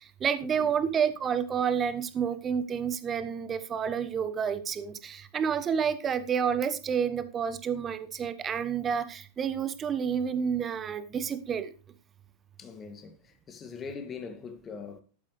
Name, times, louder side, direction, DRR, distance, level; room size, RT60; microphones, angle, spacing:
voice 1, 0.0-11.7, right 7 dB, 25° right, 1.2 m, -29 dB
voice 2, 12.6-15.0, left 5 dB, 25° left, 2.3 m, -42 dB
12.5 x 12.0 x 3.2 m
figure-of-eight pair, 90°, 0 cm